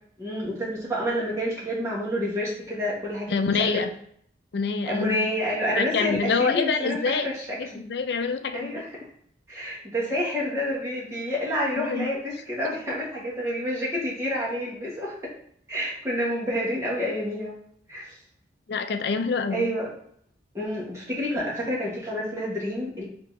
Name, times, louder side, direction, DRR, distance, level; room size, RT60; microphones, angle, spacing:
voice 1, 0.2-3.8 4.9-7.0 7.2-7.8 8.5-8.9 9.5-15.2 15.7-17.6 17.9-18.2 19.5-19.9 20.5-23.0, equal, 15° right, -6 dB, 1.4 m, -29 dB
voice 2, 3.3-3.9 4.5-5.3 5.7-7.3 7.6-8.8 11.7-12.1 18.7-19.7, left 5 dB, 65° left, 8 dB, 0.4 m, -26 dB
3.7 x 2.9 x 3.5 m, 0.64 s
head